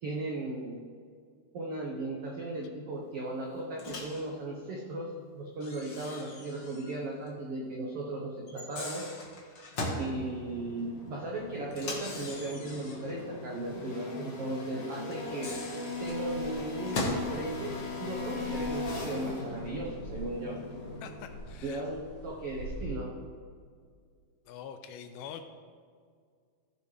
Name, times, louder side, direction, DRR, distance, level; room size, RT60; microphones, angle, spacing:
voice 1, 0.0-0.8 1.5-9.1 10.0-15.5 16.0-17.7 18.0-20.6 21.6-23.1, right 2 dB, 80° right, -2 dB, 1.3 m, -36 dB
Microwave oven, 3.8-4.2 5.6-7.0 7.3-7.4 8.5-10.1 11.7-13.1 15.1-17.3, left 2 dB, 65° left, 1.1 m, -38 dB
sound 1, 9.8-21.6, left 3 dB, 45° left, 3.2 m, -39 dB
sound 2, 15.9-22.9, right 2 dB, 55° right, 4.4 m, -47 dB
voice 2, 21.0-21.8 24.5-25.4, left 8 dB, 85° left, 7 dB, 2.5 m, -44 dB
16.5 x 7.2 x 3.2 m, 2.1 s
omnidirectional pair, 4.3 m